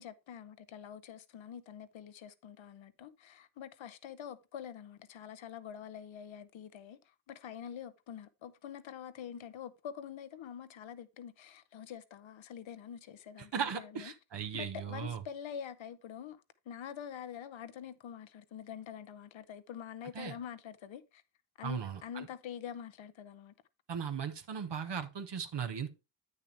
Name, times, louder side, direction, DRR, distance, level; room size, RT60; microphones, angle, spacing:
voice 1, 0.0-14.1 14.5-21.2 21.6-23.5, left 8 dB, 70° left, 0.9 m, -46 dB
voice 2, 13.5-15.2 20.1-20.4 21.6-22.3 23.9-25.9, right 7 dB, 60° right, 1.0 m, -37 dB
8.4 x 6.7 x 3.3 m
cardioid pair, 50°, 48 cm